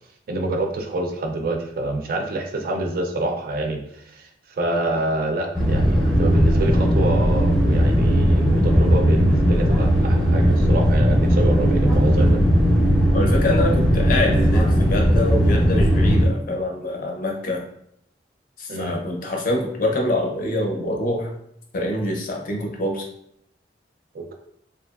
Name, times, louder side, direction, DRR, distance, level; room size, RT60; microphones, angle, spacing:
voice 1, 0.3-12.4 18.7-19.0 24.1-24.3, right 2 dB, 50° right, 3 dB, 0.3 m, -26 dB
sound 1, 5.5-16.3, equal, ahead, 0.6 m, -18 dB
voice 2, 13.1-17.6 18.6-21.3 21.7-23.0, left 1 dB, 45° left, 1 dB, 0.5 m, -25 dB
2.7 x 2.2 x 2.3 m, 0.72 s
head